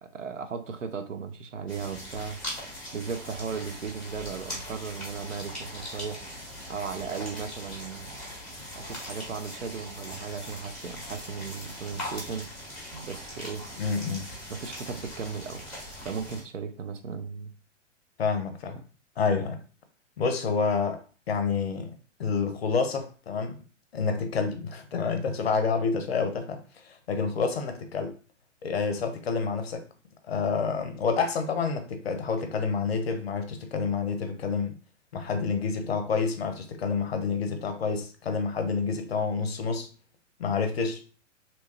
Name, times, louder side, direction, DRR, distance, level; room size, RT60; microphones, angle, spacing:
voice 1, 0.0-2.4 2.9-6.2 6.7-8.1 8.7-12.5 12.9-13.7 14.5-15.6 16.0-17.5 18.8-18.9 19.2-19.4, right 6 dB, 80° right, 0.5 m, -36 dB
sound 1, 1.7-16.4, left 1 dB, ahead, 0.9 m, -40 dB
voice 2, 13.8-14.2 18.2-18.8 19.2-19.6 20.2-21.0 21.3-23.6 23.9-26.6 26.8-28.2 28.6-29.8 30.3-34.7 35.1-39.9 40.4-41.0, left 5 dB, 55° left, 0.6 m, -28 dB
2.8 x 2.2 x 2.8 m
figure-of-eight pair, 115°, 37 cm